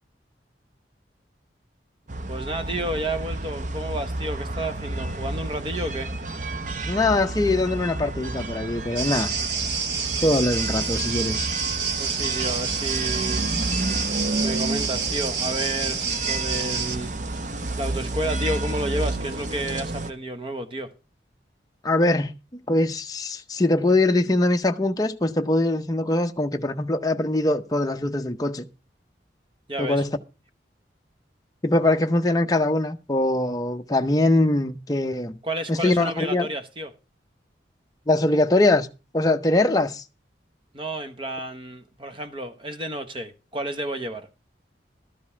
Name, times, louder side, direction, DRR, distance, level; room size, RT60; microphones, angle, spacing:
sound 1, 2.1-20.1, right 2 dB, 45° right, 0.8 m, -31 dB
voice 1, 2.3-6.1 12.0-13.4 14.4-17.1 17.8-20.9 29.7-30.0 35.4-36.9 40.7-44.3, right 1 dB, 30° right, 1.1 m, -31 dB
voice 2, 6.9-9.3 10.2-11.5 21.8-22.3 22.7-28.7 29.8-30.2 31.6-35.4 35.7-36.5 38.1-38.9 39.1-40.0, left 2 dB, 20° left, 0.7 m, -22 dB
sound 2, 9.0-17.0, right 6 dB, 70° right, 1.3 m, -28 dB
12.5 x 5.3 x 7.0 m
head